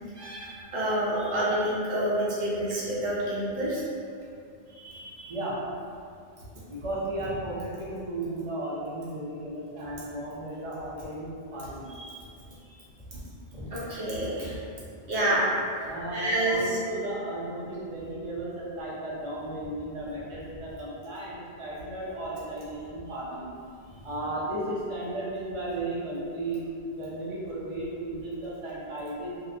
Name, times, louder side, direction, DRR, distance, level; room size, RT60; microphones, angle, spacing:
voice 1, 0.1-3.8 4.7-5.3 11.9-12.1 13.7-14.6 15.1-15.8 16.1-16.8, right 1 dB, 70° right, -8 dB, 0.9 m, -28 dB
voice 2, 5.3-5.6 6.7-11.9 13.5-13.7 15.8-23.5 24.0-26.6 27.0-29.4, right 1 dB, 45° right, -7 dB, 0.5 m, -34 dB
2.7 x 2.1 x 2.5 m, 2.4 s
omnidirectional pair, 1.0 m